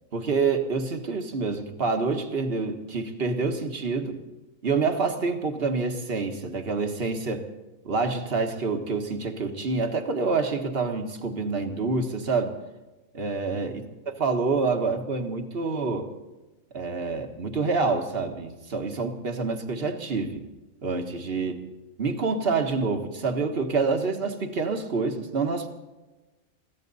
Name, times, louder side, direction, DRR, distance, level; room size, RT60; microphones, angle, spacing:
voice 1, 0.1-4.2 4.6-7.5 7.9-12.6 13.1-16.1 16.7-20.4 20.8-21.6 22.0-25.7, right 4 dB, 45° right, 5 dB, 1.7 m, -27 dB
22.0 x 16.0 x 4.1 m, 1.1 s
omnidirectional pair, 1.4 m